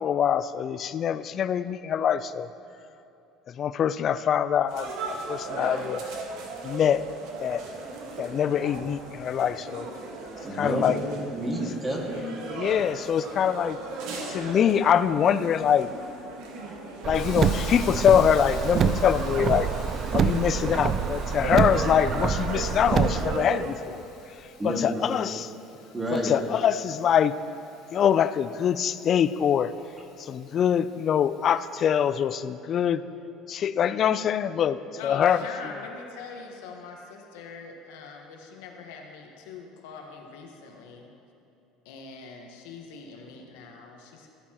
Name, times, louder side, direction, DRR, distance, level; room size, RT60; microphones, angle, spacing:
voice 1, 0.0-2.5 3.5-6.0 6.6-7.0 7.4-7.6 8.2-9.9 10.5-11.0 12.5-13.8 14.3-15.9 17.0-19.7 20.1-24.0 24.6-25.5 26.1-27.3 27.9-29.7 30.2-33.0 33.5-35.4, left 9 dB, 45° left, 15 dB, 0.3 m, -24 dB
sound 1, 4.7-23.7, right 3 dB, 70° right, 1.4 m, -37 dB
voice 2, 10.4-12.3 24.6-25.2 25.9-26.3, equal, 20° right, -1 dB, 1.8 m, -30 dB
voice 3, 12.7-13.2 35.0-41.1 41.8-44.3, left 5 dB, 85° left, 2 dB, 1.2 m, -43 dB
Car, 17.0-23.4, right 6 dB, 40° right, 0.4 m, -26 dB
Hiss, 17.1-31.9, left 5 dB, 65° left, 1.8 m, -49 dB
14.0 x 8.4 x 2.9 m, 2.9 s
supercardioid pair, 100°, 0 cm